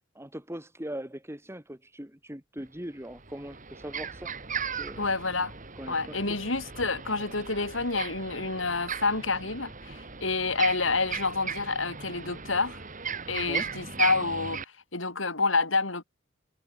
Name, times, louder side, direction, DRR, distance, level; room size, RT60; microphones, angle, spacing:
voice 1, 0.1-4.3 4.7-5.1 5.8-6.4 13.5-13.7, right 1 dB, 15° right, 4.2 m, -40 dB
sound 1, 2.6-2.7 3.1-14.6, right 6 dB, 40° right, 3.6 m, -37 dB
voice 2, 5.0-5.5 5.9-12.8 13.3-14.6 14.9-16.0, left 3 dB, 80° left, 6.0 m, -28 dB
head